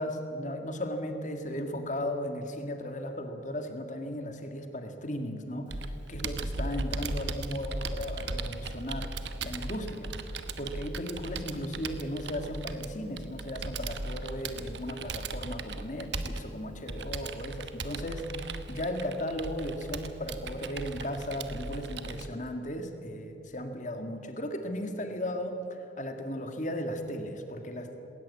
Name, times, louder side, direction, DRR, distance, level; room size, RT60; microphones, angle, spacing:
voice 1, 0.0-9.1 9.4-25.6 26.0-28.0, equal, 40° left, 6 dB, 2.0 m, -36 dB
Computer keyboard, 5.7-22.3, right 3 dB, 65° right, 1.2 m, -37 dB
20.0 x 18.0 x 8.5 m, 2.9 s
head